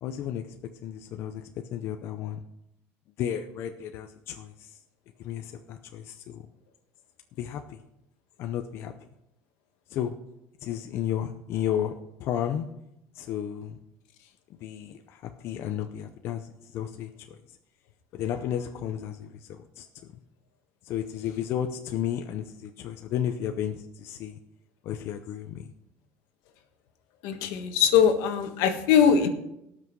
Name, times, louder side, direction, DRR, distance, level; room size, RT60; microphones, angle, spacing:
voice 1, 0.0-0.4 0.8-1.4 1.7-2.4 3.2-4.7 5.2-6.4 7.4-7.8 8.4-8.9 9.9-10.1 10.6-11.9 12.2-12.7 13.2-13.7 14.6-17.1 18.1-19.9 20.8-24.4 24.8-25.6, left 10 dB, 50° left, 7 dB, 0.6 m, -33 dB
voice 2, 27.2-29.3, left 7 dB, 80° left, 7 dB, 1.4 m, -21 dB
18.0 x 6.0 x 4.6 m, 0.82 s
cardioid pair, 175°, 6 cm